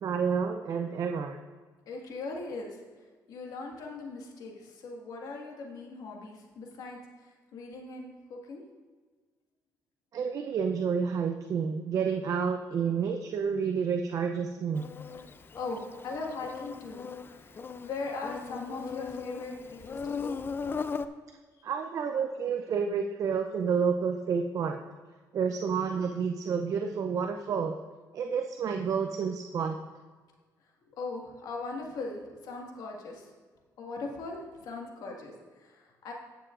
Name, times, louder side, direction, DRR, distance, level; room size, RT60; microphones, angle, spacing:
voice 1, 0.0-1.4 10.1-14.9 21.6-24.8 25.3-27.8 28.1-29.8, right 6 dB, 55° right, 5 dB, 0.6 m, -29 dB
voice 2, 1.9-2.7 3.3-8.6 15.6-17.1 17.4-17.6 17.8-20.4 30.9-33.3 33.8-36.1, left 3 dB, 70° left, 0 dB, 1.8 m, -39 dB
Insect, 14.7-21.1, left 5 dB, 35° left, 0.5 m, -38 dB
16.0 x 6.8 x 2.5 m, 1.5 s
cardioid pair, 95°, 7 cm